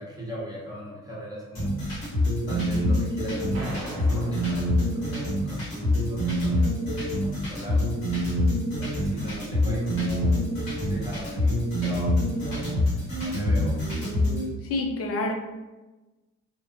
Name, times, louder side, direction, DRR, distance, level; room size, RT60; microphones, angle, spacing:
voice 1, 0.0-2.0 2.5-8.1 8.6-10.4 10.8-14.2, equal, 10° right, -5 dB, 0.9 m, -39 dB
sound 1, 1.5-14.4, left 1 dB, 80° left, 1.2 m, -25 dB
sound 2, 3.5-5.5, right 1 dB, 85° right, 0.6 m, -40 dB
voice 2, 14.6-15.3, left 2 dB, 35° left, 2 dB, 0.6 m, -27 dB
3.5 x 2.1 x 2.6 m, 1.1 s
figure-of-eight pair, 45°, 39 cm